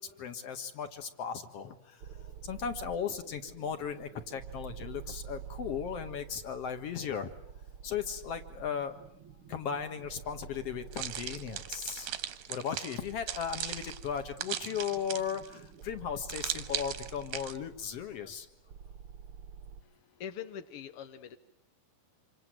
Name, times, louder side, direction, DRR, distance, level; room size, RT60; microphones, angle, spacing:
voice 1, 0.2-7.3 7.8-9.0 9.5-12.1 12.5-18.5, left 7 dB, 50° left, 8 dB, 2.2 m, -37 dB
sound 1, 2.0-19.8, right 7 dB, 60° right, 1.4 m, -49 dB
sound 2, 10.9-15.5 16.3-17.6, right 11 dB, 85° right, 3.1 m, -38 dB
voice 2, 19.8-21.4, left 8 dB, 75° left, 8 dB, 1.3 m, -43 dB
27.0 x 26.0 x 7.8 m, 0.74 s
omnidirectional pair, 4.3 m